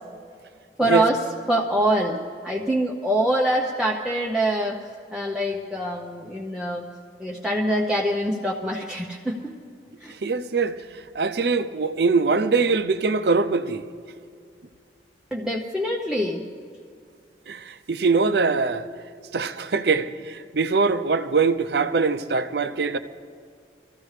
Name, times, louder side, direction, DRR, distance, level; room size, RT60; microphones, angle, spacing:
voice 1, 0.8-1.2 1.5-2.2 2.4-4.8 5.1-6.9 7.2-9.4 10.0-10.1 15.3-16.4, right 1 dB, 5° right, 0.8 m, -24 dB
voice 2, 10.2-10.8 11.1-13.8 17.5-18.9 19.3-23.0, right 4 dB, 70° right, 0.6 m, -22 dB
24.0 x 14.5 x 3.3 m
head